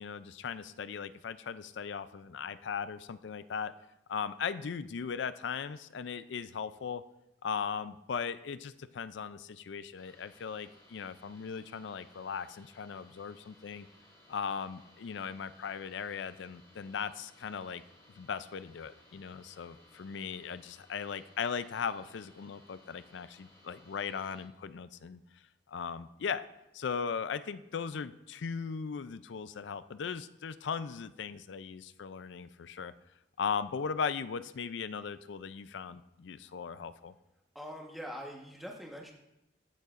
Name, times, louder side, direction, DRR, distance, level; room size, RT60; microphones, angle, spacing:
voice 1, 0.0-3.7 4.1-7.0 7.4-13.9 14.3-17.8 18.2-25.2 25.7-26.5 26.7-32.9 33.4-37.1, left 6 dB, 75° left, 14 dB, 0.4 m, -38 dB
sound 1, 10.0-24.4, left 1 dB, 30° left, 2.3 m, -61 dB
voice 2, 37.5-39.1, equal, ahead, -1 dB, 1.2 m, -43 dB
15.0 x 6.6 x 2.5 m, 0.91 s
head